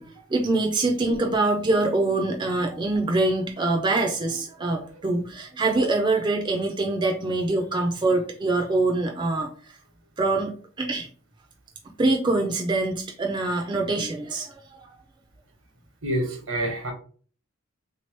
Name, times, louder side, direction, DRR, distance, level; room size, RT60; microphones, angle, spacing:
voice 1, 0.0-9.5 10.2-11.1 12.0-14.6, right 2 dB, 25° right, 0.5 m, -24 dB
voice 2, 16.0-16.9, right 1 dB, 80° right, 1.2 m, -27 dB
3.3 x 3.0 x 3.2 m
head